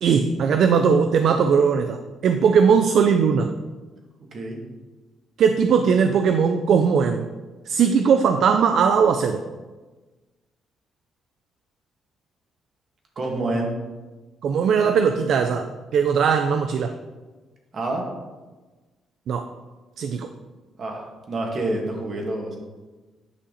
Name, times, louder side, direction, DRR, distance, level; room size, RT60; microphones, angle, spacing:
voice 1, 0.0-3.5 5.4-7.3 7.7-9.4 14.4-16.9 19.3-19.5 20.0-20.3, right 6 dB, 70° right, 7 dB, 0.5 m, -19 dB
voice 2, 13.2-13.7 17.7-18.0 20.8-22.6, right 2 dB, 50° right, 1 dB, 2.1 m, -27 dB
9.7 x 5.7 x 4.1 m, 1.2 s
cardioid pair, 90°, 0 cm